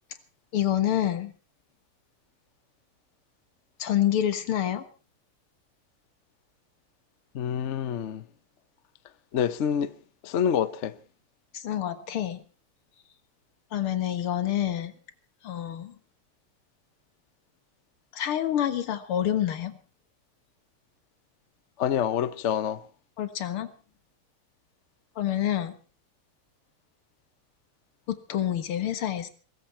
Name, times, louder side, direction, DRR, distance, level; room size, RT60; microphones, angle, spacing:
voice 1, 0.5-1.3 3.8-4.8 11.5-12.4 13.7-14.9 15.4-16.0 18.1-19.8 23.2-23.7 25.2-25.8 28.1-29.3, left 11 dB, 80° left, 2.3 m, -27 dB
voice 2, 7.3-8.2 9.3-9.9 10.2-10.9 21.8-22.8, left 8 dB, 55° left, 0.8 m, -27 dB
22.0 x 13.5 x 4.4 m
omnidirectional pair, 2.4 m